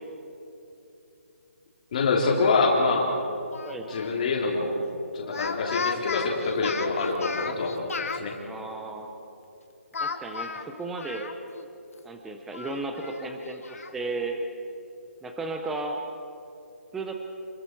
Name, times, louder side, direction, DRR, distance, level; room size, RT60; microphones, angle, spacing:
voice 1, 1.9-3.1 3.9-4.8 5.1-8.3, left 3 dB, 30° left, -1 dB, 3.2 m, -25 dB
Speech, 3.5-4.1 5.2-8.2 9.9-11.7 12.0-12.1 12.5-13.9, left 4 dB, 65° left, 1.7 m, -34 dB
voice 2, 8.4-9.1 10.0-11.3 12.0-14.4 15.2-16.0 16.9-17.2, right 3 dB, ahead, 3 dB, 0.4 m, -34 dB
29.0 x 22.0 x 4.5 m, 2.8 s
hypercardioid pair, 175°, 8 cm